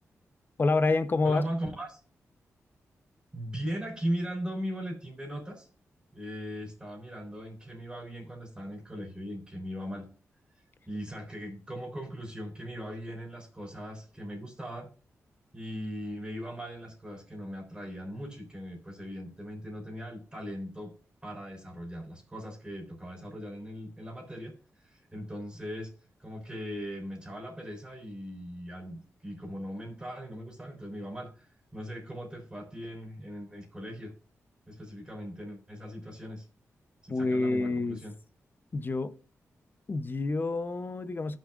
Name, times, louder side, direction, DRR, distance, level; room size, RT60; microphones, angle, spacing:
voice 1, 0.6-1.4 37.1-38.0 38.7-39.1 39.9-41.4, left 3 dB, 40° left, 0.7 m, -28 dB
voice 2, 1.2-2.0 3.3-5.7 6.1-10.1 10.9-14.9 15.5-20.9 21.2-25.9 26.2-34.1 34.7-36.5 37.0-38.1, equal, 20° right, 3.9 m, -39 dB
15.5 x 6.3 x 2.4 m
cardioid pair, 75°, 5 cm